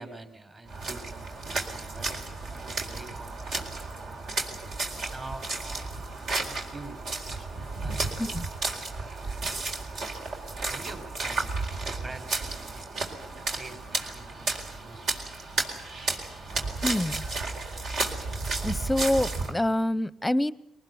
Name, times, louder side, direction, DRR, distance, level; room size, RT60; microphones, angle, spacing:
voice 1, 0.0-4.2 4.9-7.0 7.3-8.0 8.6-9.6 10.7-15.2, right 2 dB, 35° right, 9 dB, 3.9 m, -46 dB
sound 1, 0.7-19.5, right 3 dB, 65° right, 4.2 m, -33 dB
voice 2, 16.8-17.2 18.6-20.5, left 1 dB, 10° left, 18 dB, 0.9 m, -26 dB
23.0 x 19.5 x 9.4 m, 0.75 s
cardioid pair, 90°, 0 cm